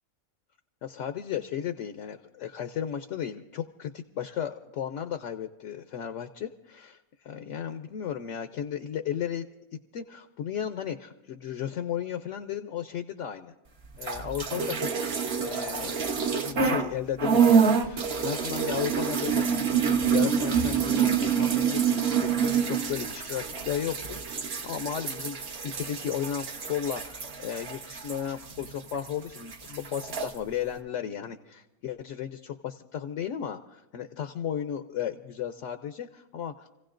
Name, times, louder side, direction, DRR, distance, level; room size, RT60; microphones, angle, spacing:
voice 1, 0.8-7.0 7.2-9.4 9.9-13.5 14.0-15.9 16.4-25.4 25.6-36.8, left 9 dB, 65° left, 8 dB, 0.9 m, -34 dB
sound 1, 13.9-16.9 17.2-29.1 29.4-30.3, right 6 dB, 50° right, 1.1 m, -27 dB
29.5 x 16.0 x 2.5 m, 0.97 s
omnidirectional pair, 1.5 m